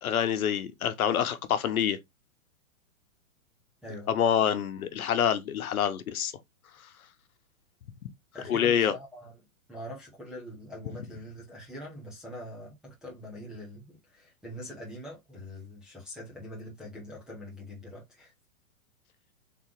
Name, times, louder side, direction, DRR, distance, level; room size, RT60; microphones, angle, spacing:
voice 1, 0.0-2.0 4.1-6.3 8.5-8.9, left 8 dB, 85° left, 0.9 m, -26 dB
voice 2, 8.3-9.3 9.7-18.3, equal, ahead, 0.4 m, -43 dB
3.8 x 2.9 x 3.5 m
hypercardioid pair, 150°, 41 cm